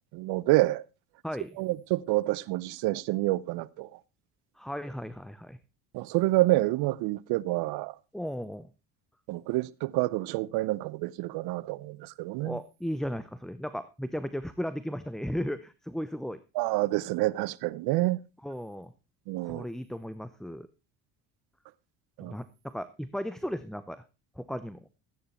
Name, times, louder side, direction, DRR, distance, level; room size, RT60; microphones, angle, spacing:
voice 1, 0.1-0.8 1.6-3.9 5.9-7.9 9.3-12.6 16.5-18.2 19.3-19.6 22.2-22.4, right 19 dB, 75° right, 0.8 m, -28 dB
voice 2, 4.6-5.6 8.1-8.7 12.4-16.4 18.4-18.9 19.4-20.7 22.2-24.0 24.4-24.9, equal, ahead, 0.7 m, -35 dB
13.5 x 9.4 x 4.3 m
supercardioid pair, 85°, 39 cm